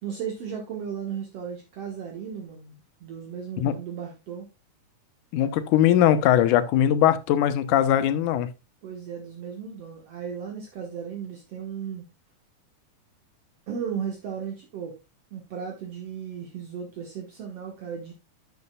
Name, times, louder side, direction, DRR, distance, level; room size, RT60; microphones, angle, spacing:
voice 1, 0.0-4.5 8.8-12.0 13.7-15.0 15.3-18.1, right 7 dB, 60° right, 2.1 m, -35 dB
voice 2, 5.3-8.5, left 11 dB, 85° left, 2.3 m, -20 dB
10.5 x 7.1 x 2.2 m
omnidirectional pair, 3.5 m